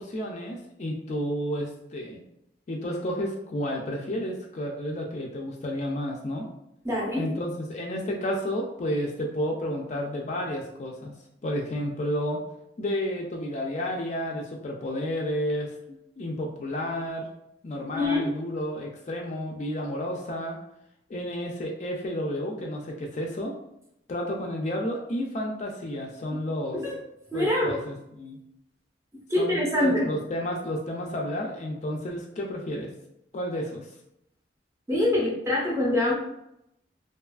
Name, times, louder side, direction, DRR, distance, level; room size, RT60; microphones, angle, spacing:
voice 1, 0.0-2.2 2.7-6.5 7.2-11.1 11.4-12.4 12.8-15.7 16.2-17.3 17.6-20.6 21.1-23.6 24.1-26.8 27.3-28.4 29.4-32.9 33.3-33.9, equal, 40° left, 0 dB, 0.3 m, -31 dB
voice 2, 6.8-7.3 17.9-18.3 26.3-26.4 26.7-27.0 27.3-27.8 29.3-30.1 34.9-36.1, left 1 dB, 15° right, -4 dB, 0.6 m, -25 dB
2.7 x 2.3 x 2.3 m, 0.80 s
head